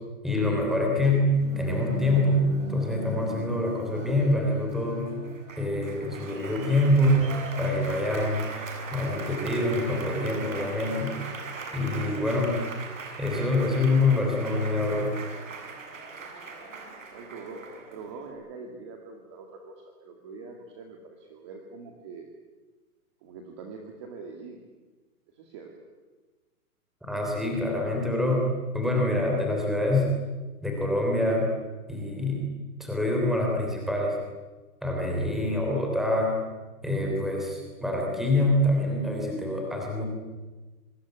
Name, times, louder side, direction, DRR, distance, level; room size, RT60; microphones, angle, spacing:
voice 1, 0.2-5.2 5.6-7.3 7.6-8.5 8.9-11.2 11.7-12.6 13.2-15.1 27.0-30.1 30.6-31.5 31.9-32.4 32.8-34.2 34.8-36.3 36.8-40.1, left 1 dB, ahead, 0 dB, 3.3 m, -25 dB
Applause, 1.3-18.3, right 3 dB, 55° right, 7.8 m, -39 dB
voice 2, 17.0-19.7 20.0-22.3 23.2-24.6 25.3-25.7, right 4 dB, 20° right, 2 dB, 2.1 m, -43 dB
25.5 x 24.0 x 9.3 m, 1.2 s
hypercardioid pair, 180°, 45 cm